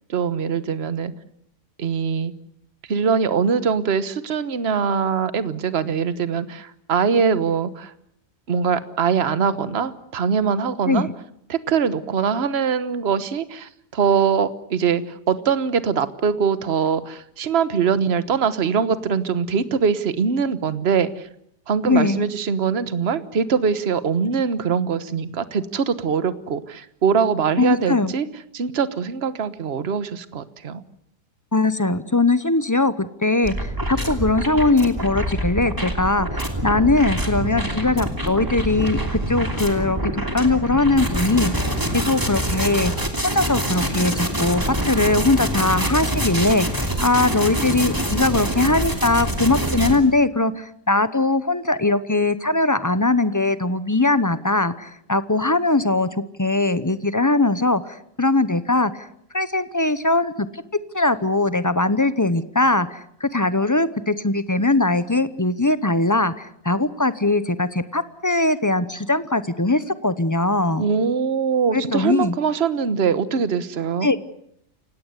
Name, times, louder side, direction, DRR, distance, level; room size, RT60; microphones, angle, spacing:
voice 1, 0.1-1.1 1.8-2.3 2.9-7.9 8.5-11.1 11.5-21.3 21.7-28.3 28.5-30.8 70.8-74.1, right 6 dB, 40° right, 13 dB, 1.3 m, -22 dB
voice 2, 21.8-22.3 27.6-28.1 31.5-41.6 41.9-42.9 43.2-56.1 56.4-59.1 59.3-70.8 71.7-72.3 74.0-74.2, left 2 dB, 20° left, 14 dB, 0.5 m, -21 dB
sound 1, 33.4-50.0, equal, 10° right, 3.0 m, -25 dB
29.0 x 17.5 x 8.2 m, 0.73 s
omnidirectional pair, 1.7 m